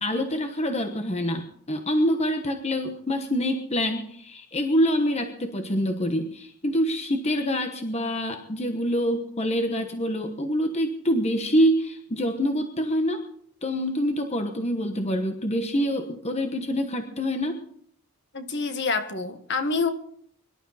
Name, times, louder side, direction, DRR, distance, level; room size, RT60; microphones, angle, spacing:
voice 1, 0.0-13.2 13.6-17.6, equal, 30° left, 6 dB, 1.1 m, -26 dB
voice 2, 18.3-19.9, left 4 dB, 50° left, 8 dB, 1.6 m, -27 dB
24.0 x 12.0 x 4.2 m, 0.64 s
head